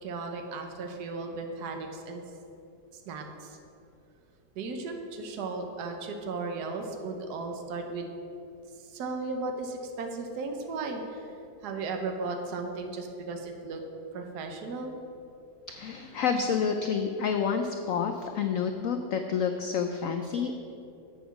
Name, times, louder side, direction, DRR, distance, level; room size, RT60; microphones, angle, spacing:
voice 1, 0.0-2.2 2.9-3.6 4.5-8.1 8.8-11.4 11.6-13.8 14.1-14.9, right 3 dB, 65° right, 4 dB, 1.4 m, -36 dB
voice 2, 15.7-20.5, left 6 dB, 85° left, 6 dB, 0.7 m, -29 dB
7.9 x 7.1 x 6.0 m, 2.8 s
omnidirectional pair, 2.0 m